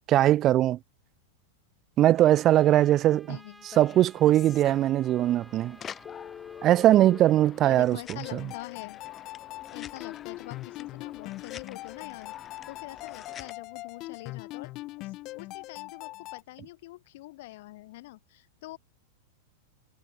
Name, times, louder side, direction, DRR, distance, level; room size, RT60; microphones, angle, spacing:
voice 1, 0.1-0.8 2.0-3.4 3.8-5.8 6.6-8.0 8.3-8.4, right 13 dB, 30° right, 0.6 m, -21 dB
Trumpet, 2.1-7.5, right 1 dB, ahead, 3.4 m, -55 dB
voice 2, 3.3-3.7 7.6-9.0 9.7-12.3 12.7-18.8, left 18 dB, 60° left, 7.2 m, -45 dB
sound 1, 3.7-13.5, left 8 dB, 20° left, 4.6 m, -46 dB
sound 2, 8.2-16.4, left 18 dB, 35° left, 1.4 m, -41 dB
supercardioid pair, 140°, 0 cm